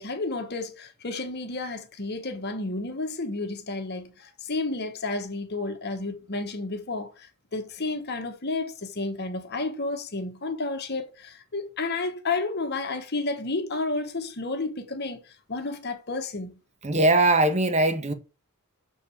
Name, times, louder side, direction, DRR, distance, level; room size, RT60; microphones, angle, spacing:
voice 1, 0.0-16.6, left 3 dB, 50° left, 1.3 m, -31 dB
voice 2, 16.8-18.1, right 2 dB, 30° right, 1.1 m, -21 dB
6.6 x 5.2 x 6.9 m
head